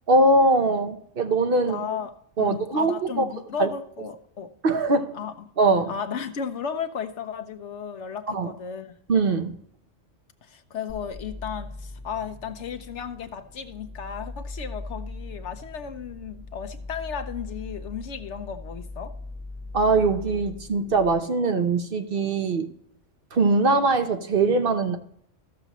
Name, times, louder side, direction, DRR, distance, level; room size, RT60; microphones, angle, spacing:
voice 1, 0.1-1.8 2.4-3.3 3.6-3.7 4.6-5.1 5.6-5.9 8.3-8.5 9.1-9.6 19.7-22.7 23.3-25.0, right 3 dB, 55° right, 7 dB, 0.9 m, -22 dB
voice 2, 1.7-2.1 2.4-4.5 5.1-5.5 5.9-8.9 10.4-19.1, left 7 dB, 70° left, 9 dB, 1.1 m, -34 dB
sound 1, 10.9-21.1, left 2 dB, 5° right, 2.7 m, -40 dB
14.5 x 6.8 x 3.0 m, 0.71 s
omnidirectional pair, 1.3 m